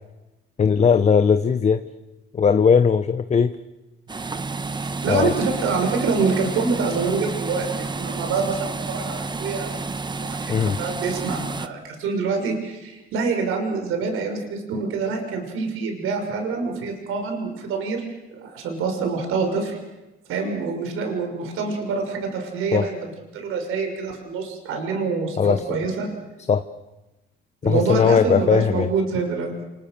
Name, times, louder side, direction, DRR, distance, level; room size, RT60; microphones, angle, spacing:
voice 1, 0.6-1.8 2.3-3.5 5.1-5.3 10.5-10.8 22.7-22.8 25.4-25.6 26.5-26.6 27.6-28.9, left 6 dB, 35° left, 10 dB, 1.0 m, -18 dB
sound 1, 4.1-11.7, right 3 dB, 20° right, 1.2 m, -30 dB
voice 2, 5.0-9.8 10.1-18.1 18.3-19.8 20.3-25.4 25.7-26.1 27.6-29.5, right 4 dB, 80° right, 3 dB, 6.2 m, -26 dB
29.5 x 27.5 x 6.8 m, 1.0 s
cardioid pair, 115°, 21 cm